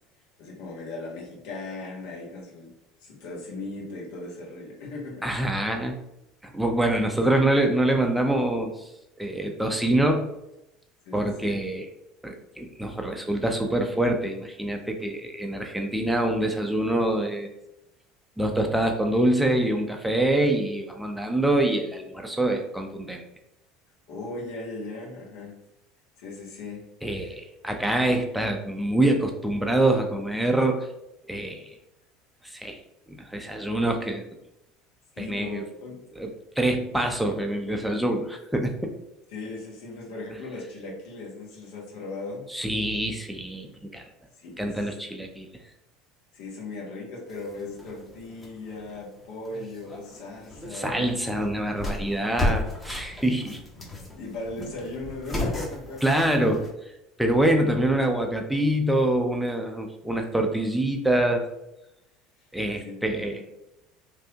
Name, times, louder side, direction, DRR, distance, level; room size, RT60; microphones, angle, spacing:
voice 1, 0.4-2.7 3.0-5.3 7.0-7.2 11.0-11.6 24.1-25.6 26.2-27.4 35.1-36.1 39.3-42.5 44.4-44.8 46.3-51.4 53.8-56.2 62.4-62.5 62.8-63.4, left 2 dB, 70° left, -3 dB, 1.1 m, -38 dB
voice 2, 5.2-6.0 6.4-8.9 9.2-10.3 11.1-11.9 12.2-17.5 18.4-23.2 27.0-30.9 31.3-31.7 32.4-32.8 33.1-34.3 35.2-35.6 36.2-38.9 42.5-44.0 44.6-45.5 50.7-53.6 56.0-56.7 57.2-61.4 62.5-63.4, right 1 dB, 5° right, 3 dB, 0.4 m, -25 dB
sound 1, 47.3-56.7, left 1 dB, 20° left, 0.9 m, -34 dB
3.2 x 2.6 x 2.8 m, 0.88 s
hypercardioid pair, 75°, 0 cm